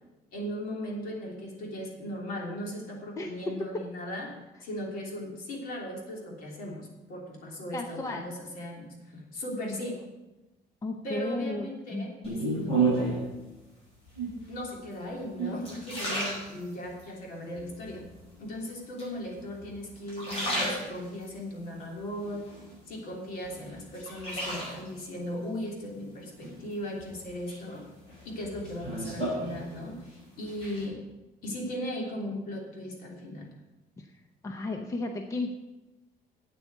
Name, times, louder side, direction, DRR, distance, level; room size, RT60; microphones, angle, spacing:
voice 1, 0.3-4.3 4.6-10.0 11.0-13.3 14.5-18.0 18.4-22.5 22.9-27.8 28.2-31.0 31.4-33.5, equal, 60° left, -1 dB, 3.2 m, -37 dB
voice 2, 3.2-3.5 7.7-8.3 10.8-12.1 34.0-34.1 34.4-35.6, left 2 dB, 20° left, 5 dB, 0.7 m, -34 dB
sound 1, 12.2-13.3 14.1-14.6 15.1-17.1 17.6-18.2 19.0-19.7 20.0-21.3 21.8-23.0 23.4-25.1 26.4-27.0 27.5-30.1 30.3-30.8, right 2 dB, 35° left, 5.2 m, -32 dB
8.5 x 8.2 x 8.1 m, 1.0 s
cardioid pair, 170°, 17 cm